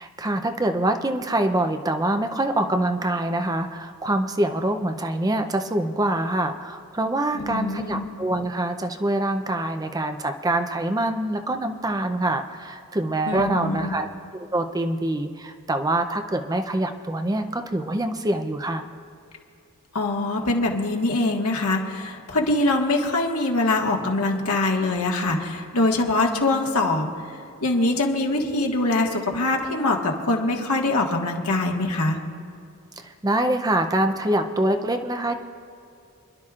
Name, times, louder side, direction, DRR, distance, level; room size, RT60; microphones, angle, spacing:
voice 1, 0.0-14.1 14.3-18.9 33.0-35.3, right 1 dB, 15° right, 7 dB, 0.6 m, -25 dB
voice 2, 7.3-8.1 13.3-13.9 19.9-27.1 27.6-32.2, left 2 dB, 80° left, 0 dB, 1.7 m, -23 dB
29.0 x 11.5 x 2.5 m, 2.5 s
head